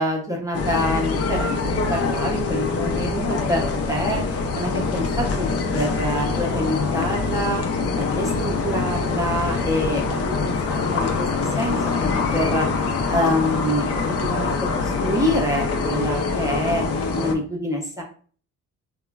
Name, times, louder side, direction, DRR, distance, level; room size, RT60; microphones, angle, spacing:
voice 1, 0.0-12.7 13.1-16.9 17.1-18.0, equal, 10° right, -1 dB, 0.6 m, -26 dB
sound 1, 0.5-17.4, left 4 dB, 55° left, 0.5 m, -24 dB
3.0 x 2.1 x 2.3 m, 0.43 s
cardioid pair, 90°, 30 cm